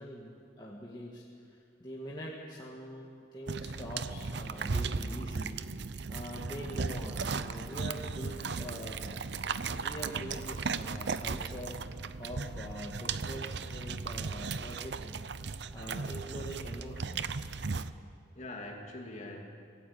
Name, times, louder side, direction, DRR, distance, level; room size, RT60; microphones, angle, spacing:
voice 1, 0.0-5.6 6.1-9.2 9.6-15.2 15.7-17.4, equal, 20° left, -4 dB, 2.0 m, -44 dB
sound 1, 3.5-17.9, right 4 dB, 60° right, 0.7 m, -36 dB
sound 2, 7.2-11.6, right 5 dB, 75° right, 1.1 m, -49 dB
voice 2, 18.3-19.4, left 1 dB, 35° left, 1 dB, 2.9 m, -45 dB
26.0 x 17.5 x 8.7 m, 2.3 s
head